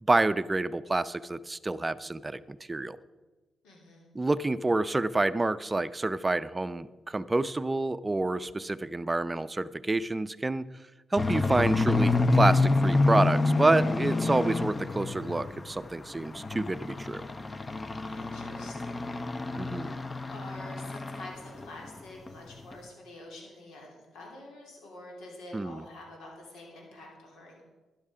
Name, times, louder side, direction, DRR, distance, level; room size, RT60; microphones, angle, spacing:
voice 1, 0.0-3.0 4.1-10.6 11.1-17.2 19.6-20.0 25.5-25.8, right 2 dB, 20° right, 14 dB, 0.5 m, -28 dB
voice 2, 3.6-4.1 18.1-19.5 19.8-27.6, left 2 dB, 90° left, -1 dB, 3.2 m, -47 dB
sound 1, 11.2-15.7 16.1-21.3 21.6-21.9 22.3-22.4 22.7-22.8, left 3 dB, 30° left, 0.7 m, -28 dB
12.5 x 10.5 x 5.0 m, 1.2 s
cardioid pair, 75°, 0 cm